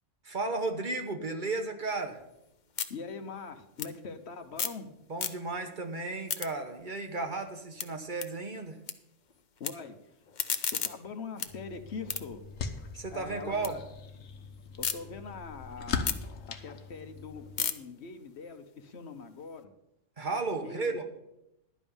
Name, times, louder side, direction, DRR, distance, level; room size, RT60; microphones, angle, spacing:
voice 1, 0.2-2.2 5.1-8.8 12.9-13.8 20.2-21.0, right 3 dB, 40° right, 5 dB, 1.1 m, -34 dB
sound 1, 1.9-4.9 5.1-5.7 6.1-8.9 9.2-9.7 10.1-13.7 14.1-15.0 15.4-19.6, left 7 dB, 45° left, 0.7 m, -38 dB
voice 2, 2.9-4.9 9.6-10.2 10.7-12.4 13.1-13.8 14.8-16.2 16.5-19.7 20.6-21.1, left 5 dB, 60° left, 8 dB, 1.1 m, -43 dB
sound 2, 11.5-17.6, left 5 dB, 90° left, 1.3 m, -40 dB
11.5 x 5.3 x 8.6 m, 0.85 s
omnidirectional pair, 1.3 m